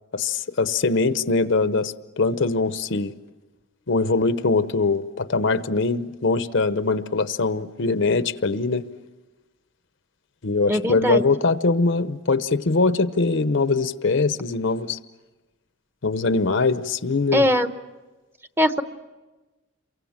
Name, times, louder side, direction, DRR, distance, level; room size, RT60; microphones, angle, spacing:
voice 1, 0.1-3.1 3.9-8.8 10.4-15.0 16.0-17.5, left 3 dB, 60° left, 12 dB, 0.8 m, -22 dB
voice 2, 10.7-11.2 17.3-17.7 18.6-18.8, equal, 10° right, 9 dB, 0.9 m, -20 dB
28.5 x 24.0 x 7.3 m, 1.2 s
head